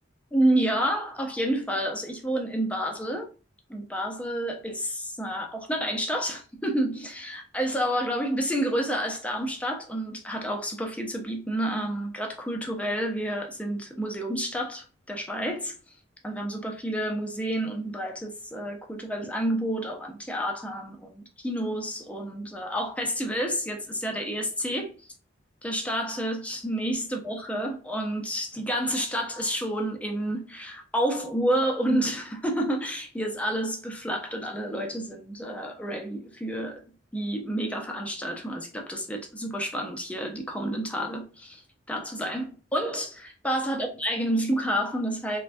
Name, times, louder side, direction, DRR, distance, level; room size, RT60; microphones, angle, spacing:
voice 1, 0.3-3.3 3.7-15.7 16.2-24.9 25.6-36.8 37.1-41.6 41.9-45.4, right 1 dB, 5° left, 0.5 m, -29 dB
3.2 x 2.2 x 2.5 m
head